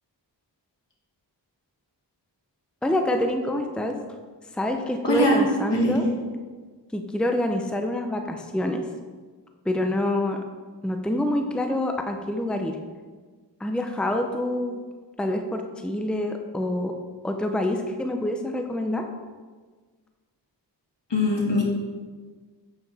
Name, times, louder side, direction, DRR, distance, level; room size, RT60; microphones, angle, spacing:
voice 1, 2.8-4.0 4.5-6.1 6.9-8.9 9.6-10.4 10.8-12.8 13.6-14.8 15.2-17.0 17.2-19.1, left 1 dB, ahead, 4 dB, 0.7 m, -26 dB
voice 2, 5.0-5.4 5.7-6.1 21.1-21.6, left 1 dB, 70° left, -2 dB, 2.0 m, -22 dB
7.8 x 6.7 x 3.5 m, 1.4 s
cardioid pair, 40°, 44 cm